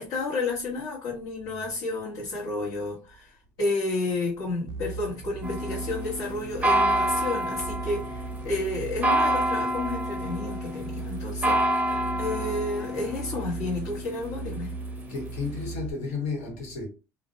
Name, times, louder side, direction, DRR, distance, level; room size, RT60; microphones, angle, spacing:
voice 1, 0.0-3.3 3.6-11.6 12.2-14.7, left 2 dB, 55° left, 1.1 m, -31 dB
sound 1, 4.7-15.9, right 4 dB, 70° right, 0.4 m, -38 dB
sound 2, 5.4-15.6, right 1 dB, 15° right, 0.6 m, -29 dB
voice 2, 15.1-16.9, left 4 dB, 85° left, 1.1 m, -32 dB
2.4 x 2.0 x 2.5 m
supercardioid pair, 105°, 8 cm